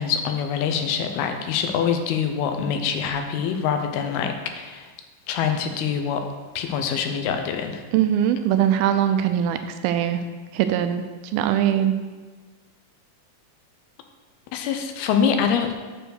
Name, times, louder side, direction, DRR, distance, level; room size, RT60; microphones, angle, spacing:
voice 1, 0.0-4.9 5.3-6.2 6.6-7.8 14.5-15.8, left 7 dB, 85° left, 6 dB, 2.7 m, -25 dB
voice 2, 7.9-10.2 10.5-11.0 11.3-12.0, right 10 dB, 85° right, 8 dB, 2.3 m, -21 dB
7.9 x 4.6 x 6.4 m, 1.4 s
omnidirectional pair, 4.4 m